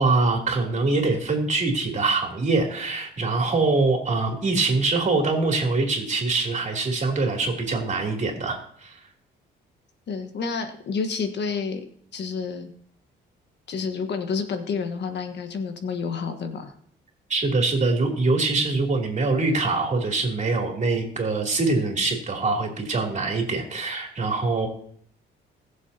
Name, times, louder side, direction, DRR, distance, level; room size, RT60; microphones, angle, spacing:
voice 1, 0.0-9.0 17.3-24.7, right 3 dB, 40° right, 1 dB, 3.3 m, -24 dB
voice 2, 10.1-11.8 12.1-12.7 13.7-16.7, left 5 dB, 60° left, 7 dB, 1.5 m, -29 dB
20.5 x 7.3 x 2.9 m, 0.63 s
cardioid pair, 90°, 20 cm